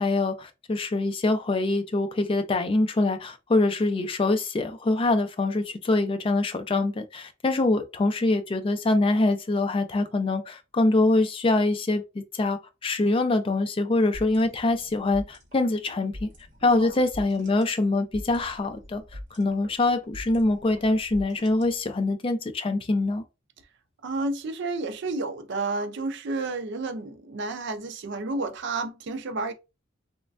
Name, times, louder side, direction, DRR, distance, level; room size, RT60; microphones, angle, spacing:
voice 1, 0.0-16.3 16.6-19.0 19.3-23.2, left 2 dB, 25° left, 0.4 m, -24 dB
sound 1, 14.1-22.1, left 1 dB, 40° right, 0.9 m, -44 dB
voice 2, 24.0-29.5, right 3 dB, 60° right, 0.4 m, -31 dB
3.2 x 2.1 x 2.4 m
head